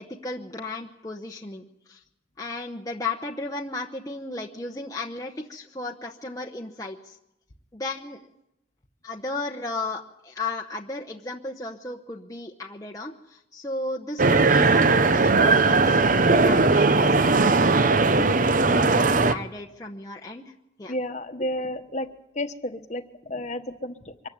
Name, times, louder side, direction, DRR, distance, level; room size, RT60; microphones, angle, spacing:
voice 1, 0.0-2.0 2.4-7.2 7.7-8.2 9.0-17.1 17.4-17.5 17.9-20.5 20.8-20.9, left 2 dB, 20° left, 1 dB, 0.9 m, -35 dB
sound 1, 14.2-19.3, right 3 dB, 45° right, 0.8 m, -19 dB
voice 2, 15.8-16.2 20.9-22.1 22.3-24.3, left 1 dB, 35° left, 8 dB, 1.2 m, -32 dB
24.5 x 14.5 x 9.4 m, 0.86 s
head